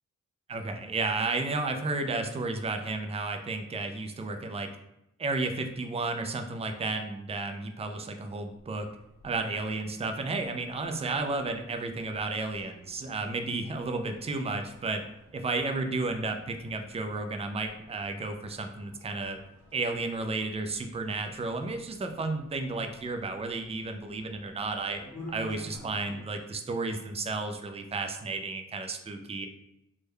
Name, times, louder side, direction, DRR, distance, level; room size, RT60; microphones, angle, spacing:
voice 1, 0.5-4.7 5.2-8.9 9.2-15.0 15.3-19.4 19.7-25.0 25.3-29.5, right 3 dB, 20° right, 6 dB, 0.3 m, -32 dB
sound 1, 8.5-26.2, left 1 dB, 85° left, 0.9 m, -52 dB
3.4 x 2.2 x 3.2 m, 0.86 s
wide cardioid pair, 75°, 30 cm